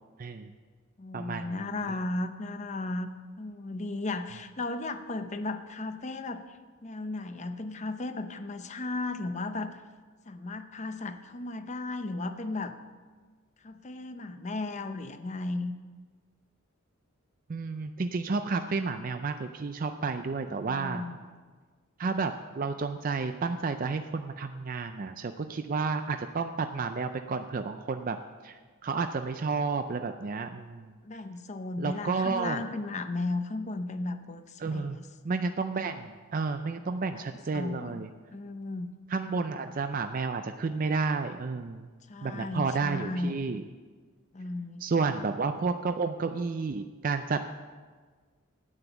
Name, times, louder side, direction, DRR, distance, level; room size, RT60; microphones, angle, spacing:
voice 1, 0.2-0.5 1.1-1.9 17.5-21.1 22.0-28.2 28.4-30.9 31.8-32.7 34.6-35.0 35.2-38.1 39.1-41.9 42.2-43.6 44.8-47.4, right 4 dB, 40° right, 8 dB, 0.4 m, -31 dB
voice 2, 1.0-3.1 3.4-9.8 10.3-12.7 13.6-15.7 20.5-21.3 31.0-35.1 37.1-37.3 37.5-38.9 42.1-43.3 44.3-45.2, left 2 dB, 35° left, 9 dB, 0.6 m, -35 dB
9.8 x 9.0 x 6.9 m, 1.5 s
head